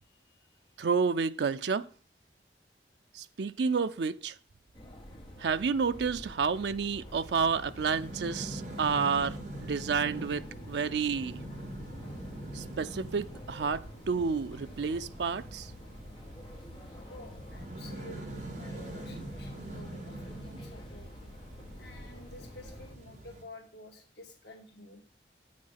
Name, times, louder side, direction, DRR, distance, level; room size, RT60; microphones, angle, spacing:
voice 1, 0.0-0.6 17.1-21.1 21.8-25.0, left 1 dB, 70° left, 2.2 m, -51 dB
voice 2, 0.8-1.9 3.1-4.4 5.4-11.4 12.5-15.7, right 5 dB, 70° right, 0.4 m, -30 dB
sound 1, 4.7-23.0, equal, 25° left, 1.9 m, -48 dB
sound 2, 7.1-23.4, right 1 dB, 45° right, 2.3 m, -44 dB
sound 3, 9.6-17.9, equal, 50° left, 2.5 m, -53 dB
8.8 x 6.4 x 5.6 m
head